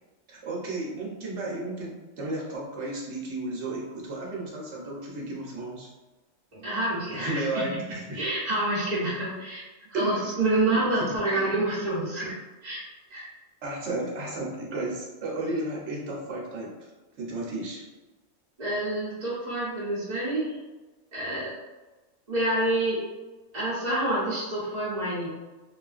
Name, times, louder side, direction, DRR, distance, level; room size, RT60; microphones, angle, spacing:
voice 1, 0.3-5.9 7.2-8.2 9.9-10.3 11.0-11.7 12.2-12.3 13.6-16.7 17.2-17.8, right 2 dB, 65° right, -3 dB, 1.1 m, -33 dB
voice 2, 6.5-7.6 8.1-9.6 9.9-12.3 12.6-12.8 13.1-13.3 18.6-20.6 21.1-21.5 22.3-23.0 23.5-25.3, right 1 dB, 40° right, -9 dB, 0.8 m, -27 dB
3.1 x 2.4 x 2.4 m, 1.2 s
omnidirectional pair, 1.3 m